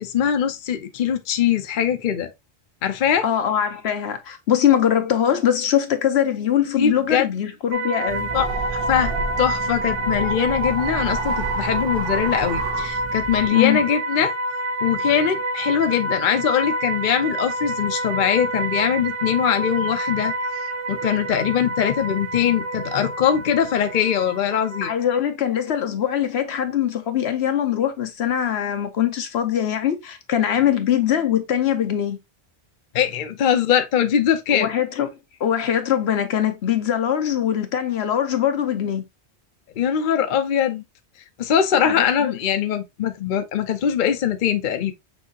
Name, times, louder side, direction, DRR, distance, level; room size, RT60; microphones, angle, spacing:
voice 1, 0.0-2.3 2.8-3.2 6.8-7.3 8.3-8.4 8.9-14.3 14.8-20.3 20.9-24.9 32.9-34.7 39.8-40.8 41.4-44.9, left 9 dB, 55° left, 0.7 m, -22 dB
voice 2, 3.2-8.3 13.5-13.8 24.8-32.2 34.5-39.0 41.8-42.3, left 10 dB, 75° left, 1.0 m, -22 dB
sound 1, 7.7-25.0, right 1 dB, 65° right, 1.0 m, -28 dB
sound 2, 8.1-13.5, right 4 dB, 45° right, 0.3 m, -31 dB
6.1 x 2.7 x 2.7 m
omnidirectional pair, 1.1 m